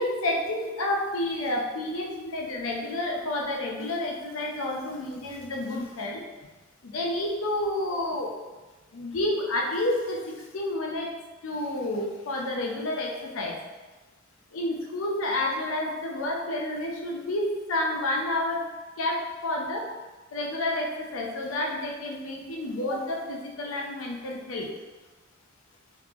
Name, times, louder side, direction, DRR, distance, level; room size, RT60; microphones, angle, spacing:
voice 1, 0.0-6.2 6.8-8.3 8.9-11.1 11.4-13.6 14.5-18.6 19.0-19.9 20.3-24.7, left 1 dB, 80° left, -1 dB, 0.6 m, -30 dB
3.5 x 3.1 x 2.5 m, 1.2 s
head